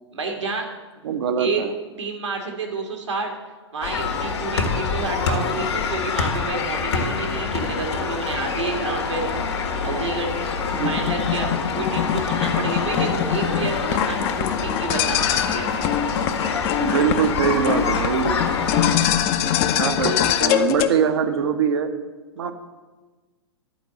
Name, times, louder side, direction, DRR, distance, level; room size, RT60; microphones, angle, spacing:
voice 1, 0.1-0.6 0.9-1.0 1.4-1.6 2.0-3.3 3.7-9.4 9.8-10.5 10.8-15.7 19.8-20.1, right 3 dB, 80° right, 2 dB, 2.1 m, -29 dB
voice 2, 1.0-1.7 10.7-10.9 16.8-18.4 19.7-20.1 20.4-21.9 22.4-22.5, right 7 dB, 60° right, 8 dB, 1.0 m, -22 dB
sound 1, 3.8-18.9, left 5 dB, 70° left, 1.7 m, -26 dB
sound 2, 10.6-20.9, left 9 dB, 35° left, 0.7 m, -23 dB
11.5 x 4.6 x 7.6 m, 1.3 s
figure-of-eight pair, 110°, 15 cm